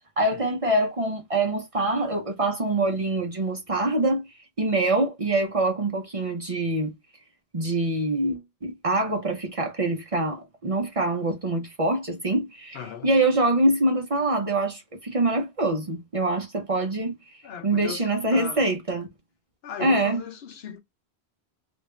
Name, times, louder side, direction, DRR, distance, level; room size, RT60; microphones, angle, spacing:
voice 1, 0.2-4.2 4.6-6.9 7.5-17.1 17.6-19.1 19.8-20.2, right 2 dB, 40° right, 0.6 m, -25 dB
voice 2, 12.7-13.1 17.4-18.7 19.6-20.8, left 7 dB, 75° left, 0.9 m, -38 dB
3.5 x 2.4 x 3.1 m
omnidirectional pair, 1.1 m